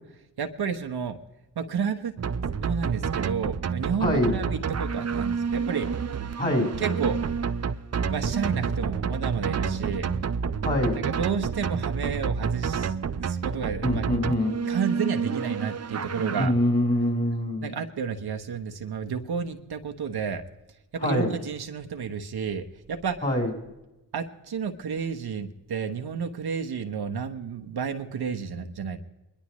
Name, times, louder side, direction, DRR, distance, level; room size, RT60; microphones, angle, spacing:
voice 1, 0.4-1.2 1.6-2.2 2.6-5.9 6.8-7.2 8.1-10.1 11.0-14.1 14.7-16.5 17.6-20.4 20.9-23.2 24.1-29.0, right 6 dB, 65° right, 5 dB, 1.1 m, -31 dB
sound 1, 2.2-16.5, right 6 dB, 40° right, 0.7 m, -29 dB
voice 2, 4.0-4.3 6.4-6.7 10.6-11.0 13.8-14.5 16.4-17.7 21.0-21.3 23.2-23.5, left 1 dB, 25° left, 2 dB, 4.2 m, -24 dB
23.0 x 11.5 x 3.1 m, 0.99 s
cardioid pair, 60°, 41 cm